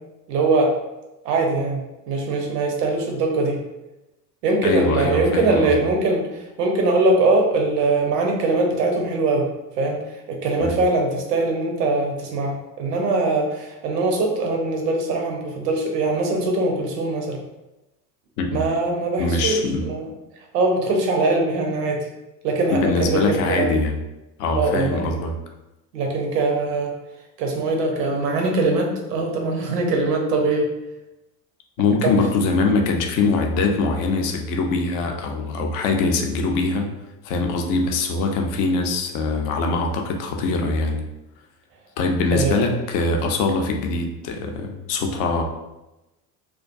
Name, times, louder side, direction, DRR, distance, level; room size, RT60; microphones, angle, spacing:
voice 1, 0.3-0.7 1.2-3.6 4.4-9.5 9.8-10.0 10.3-17.4 18.5-20.1 20.5-22.1 22.4-23.7 24.5-25.2 25.9-26.9 27.4-30.7 32.0-32.1 42.3-42.6, right 2 dB, 75° right, 2 dB, 0.7 m, -22 dB
voice 2, 4.6-5.7 10.6-10.7 18.4-18.6 19.2-19.9 22.7-24.0 24.4-25.3 31.8-36.9 37.2-41.1 42.0-45.4, left 3 dB, 45° left, 3 dB, 0.5 m, -22 dB
2.3 x 2.2 x 2.5 m, 0.98 s
figure-of-eight pair, 65°, 49 cm